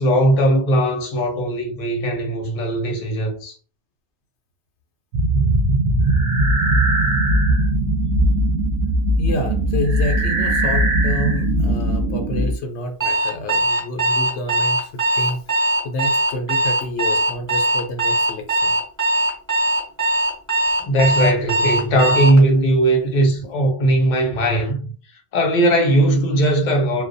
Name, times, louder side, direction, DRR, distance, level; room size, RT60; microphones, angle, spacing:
voice 1, 0.0-3.5 20.8-24.9 25.3-27.1, right 1 dB, 50° left, 0.7 m, -18 dB
sound 1, 5.1-12.6, right 1 dB, 65° right, 0.7 m, -19 dB
voice 2, 9.2-18.8, left 1 dB, 75° left, 0.9 m, -28 dB
Alarm, 13.0-22.4, right 2 dB, 20° right, 0.8 m, -20 dB
2.3 x 2.1 x 2.5 m
omnidirectional pair, 1.2 m